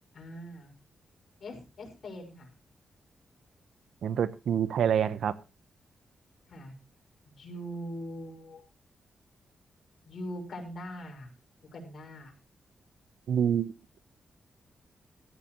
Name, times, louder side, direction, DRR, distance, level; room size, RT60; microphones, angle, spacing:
voice 1, 0.1-0.7 1.4-2.5 6.5-6.7 7.3-8.6 10.1-11.3 11.7-12.3, equal, 60° left, 2 dB, 5.7 m, -41 dB
voice 2, 4.0-5.3 13.3-13.7, right 8 dB, 80° right, 15 dB, 0.9 m, -26 dB
17.0 x 14.0 x 3.0 m, 0.29 s
cardioid pair, 105°, 0 cm